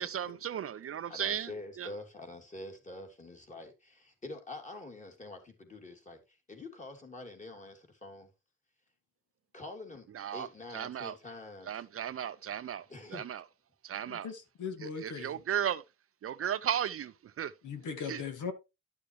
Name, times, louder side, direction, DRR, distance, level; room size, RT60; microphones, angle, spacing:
voice 1, 0.0-1.5 1.8-1.9 10.1-10.5 10.7-11.1 11.7-13.4 13.8-14.3 14.8-15.8 16.2-17.5 18.0-18.2, right 9 dB, 45° right, 0.6 m, -35 dB
voice 2, 1.1-8.3 9.5-10.1 10.3-11.8 12.9-13.2, left 2 dB, 25° left, 2.9 m, -46 dB
voice 3, 14.2-15.3 17.6-18.5, left 6 dB, 75° left, 2.0 m, -38 dB
11.5 x 6.8 x 3.1 m
cardioid pair, 135°, 31 cm